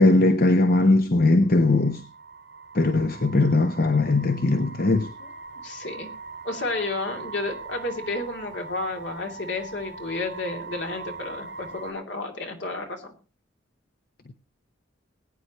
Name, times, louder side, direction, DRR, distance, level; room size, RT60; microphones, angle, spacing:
voice 1, 0.0-2.0 2.7-5.1, left 2 dB, 50° left, 0.8 m, -19 dB
sound 1, 1.4-11.9, right 4 dB, 70° right, 2.6 m, -41 dB
voice 2, 5.6-6.1 6.4-13.1, left 2 dB, 65° left, 2.8 m, -31 dB
20.5 x 9.5 x 3.0 m
head